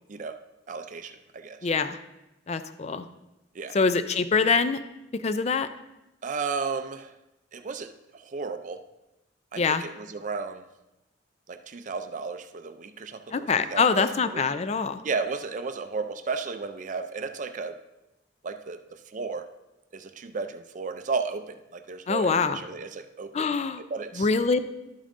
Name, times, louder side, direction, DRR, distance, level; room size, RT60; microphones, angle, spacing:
voice 1, 0.1-0.4 0.7-1.7 3.5-3.8 6.2-7.2 7.5-8.8 9.5-10.7 11.5-14.4 15.0-17.8 18.4-19.5 19.9-23.5 23.8-24.3, right 4 dB, 40° right, 9 dB, 0.4 m, -34 dB
voice 2, 1.6-2.0 2.5-3.1 3.7-4.8 5.2-5.7 9.6-9.8 13.3-15.0 22.1-22.6 23.3-23.8 24.2-24.6, left 5 dB, 35° left, 12 dB, 0.4 m, -24 dB
12.0 x 8.7 x 2.6 m, 0.95 s
head